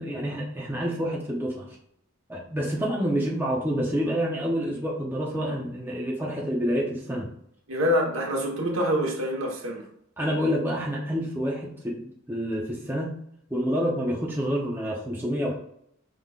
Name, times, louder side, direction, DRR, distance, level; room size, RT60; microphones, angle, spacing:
voice 1, 0.0-1.8 2.3-7.3 10.2-13.1 13.5-15.5, equal, 10° right, -3 dB, 0.7 m, -28 dB
voice 2, 7.7-9.8, equal, 70° right, -1 dB, 1.2 m, -26 dB
5.0 x 3.7 x 2.4 m, 0.71 s
head